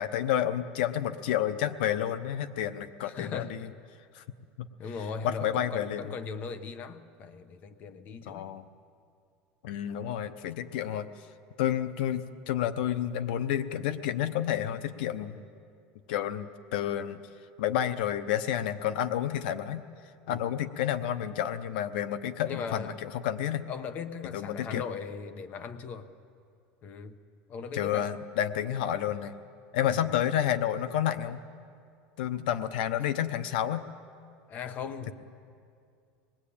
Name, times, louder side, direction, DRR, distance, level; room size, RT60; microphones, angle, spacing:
voice 1, 0.0-3.7 4.1-4.2 4.6-4.7 5.2-6.0 8.3-8.6 9.6-11.1 11.6-15.4 16.1-17.2 17.6-19.8 20.3-23.7 24.3-24.8 27.7-29.3 29.7-31.4 32.2-33.8, left 10 dB, 85° left, 12 dB, 0.9 m, -30 dB
voice 2, 3.0-3.5 4.8-8.5 9.8-10.0 14.9-15.0 15.3-15.4 20.3-20.5 22.4-23.0 23.7-26.1 26.8-27.2 27.5-28.1 29.9-30.1 34.5-35.1, left 6 dB, 35° left, 9 dB, 1.2 m, -38 dB
26.0 x 20.5 x 8.6 m, 2.4 s
cardioid pair, 160°, 5 cm